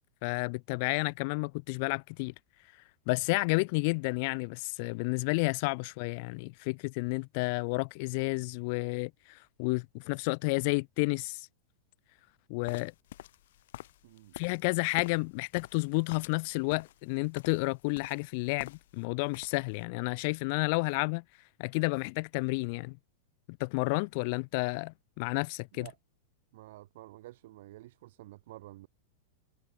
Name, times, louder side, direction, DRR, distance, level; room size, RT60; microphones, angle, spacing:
voice 1, 0.2-2.3 3.1-11.5 12.5-12.9 14.3-21.2 21.6-23.0 23.6-25.9, left 30 dB, 50° left, 0.5 m, -31 dB
sound 1, 12.6-19.0 19.3-19.8, left 14 dB, 70° left, 6.4 m, -48 dB
voice 2, 14.0-14.3 25.7-26.0 26.5-28.9, right 17 dB, 60° right, 7.3 m, -50 dB
supercardioid pair, 155°, 0 cm